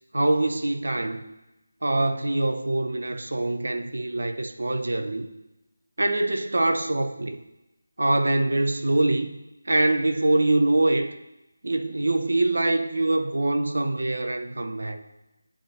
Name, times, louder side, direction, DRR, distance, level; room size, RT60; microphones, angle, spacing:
voice 1, 0.1-1.2 1.8-5.3 6.0-7.4 8.0-9.3 9.7-11.1 11.6-15.0, right 2 dB, 60° right, 7 dB, 0.6 m, -24 dB
10.0 x 4.2 x 2.8 m, 0.94 s
figure-of-eight pair, 160°, 0 cm